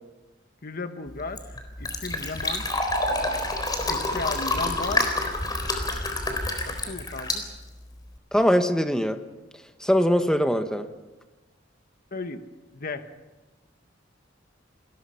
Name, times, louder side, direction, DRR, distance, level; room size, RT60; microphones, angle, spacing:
voice 1, 0.6-2.7 3.9-5.1 6.6-7.4 12.1-12.4 12.7-13.1, left 3 dB, 50° left, 8 dB, 1.4 m, -35 dB
Fill (with liquid), 1.1-8.2, left 2 dB, 20° left, 3.9 m, -28 dB
voice 2, 8.3-9.2 9.8-10.9, equal, 5° left, 7 dB, 1.3 m, -22 dB
28.5 x 21.5 x 5.8 m, 1.1 s
head